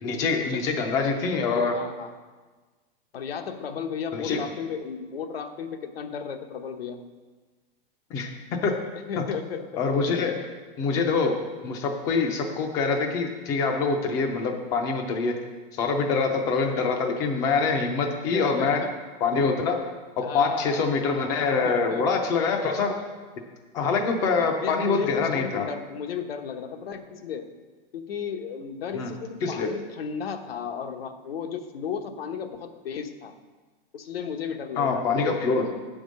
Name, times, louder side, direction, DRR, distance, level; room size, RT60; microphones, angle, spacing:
voice 1, 0.0-1.7 4.1-4.4 8.1-8.3 8.6-8.7 9.8-11.4 11.6-15.3 15.7-18.8 19.2-19.8 20.3-22.9 23.7-25.7 28.9-29.1 29.4-29.7 34.8-35.7, left 4 dB, 10° left, 4 dB, 0.4 m, -25 dB
voice 2, 1.7-2.1 3.1-7.0 8.9-9.9 18.2-18.9 20.2-20.9 21.5-22.2 24.3-27.5 27.9-33.4 33.9-35.2, left 7 dB, 85° left, 6 dB, 1.0 m, -34 dB
9.1 x 5.2 x 6.3 m, 1.4 s
supercardioid pair, 170°, 29 cm